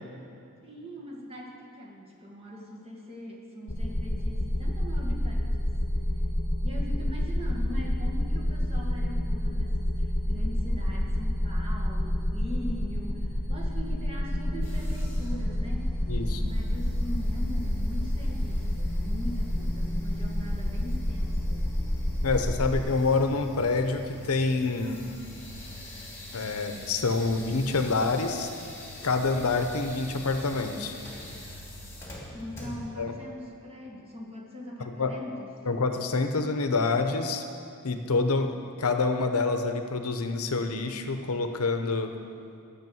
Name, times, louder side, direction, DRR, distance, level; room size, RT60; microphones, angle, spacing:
voice 1, 0.6-5.7 6.6-15.9 16.4-21.6 32.3-35.5, equal, 25° right, -2 dB, 1.7 m, -41 dB
sound 1, 3.7-22.8, equal, 35° left, 1.1 m, -28 dB
sound 2, 14.6-33.0, left 1 dB, 10° left, 2.5 m, -44 dB
voice 2, 16.1-16.4 22.2-25.0 26.3-28.5 29.0-30.9 33.0-33.1 35.0-35.1 35.7-37.4 37.8-42.1, left 3 dB, 75° left, 7 dB, 0.8 m, -27 dB
12.0 x 6.4 x 7.8 m, 2.7 s
head